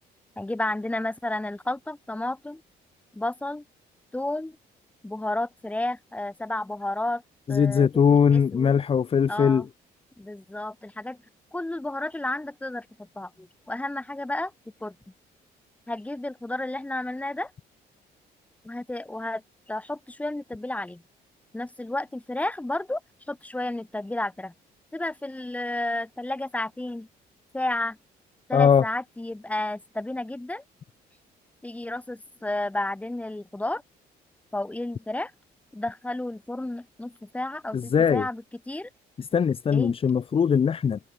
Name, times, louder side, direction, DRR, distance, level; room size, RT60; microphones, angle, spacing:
voice 1, 0.4-2.6 3.1-3.6 4.1-4.6 5.0-7.2 7.5-8.7 9.3-9.7 10.2-11.2 11.5-14.5 14.8-14.9 15.9-17.5 18.6-21.0 21.5-23.0 23.3-24.5 24.9-27.1 27.5-28.0 28.5-30.6 31.6-33.8 34.5-35.3 35.7-38.9 39.7-39.9, left 1 dB, 10° left, 6.3 m, -32 dB
voice 2, 7.5-9.6 28.5-28.8 37.7-38.3 39.2-41.0, left 7 dB, 35° left, 1.6 m, -21 dB
cardioid pair, 140°, 17 cm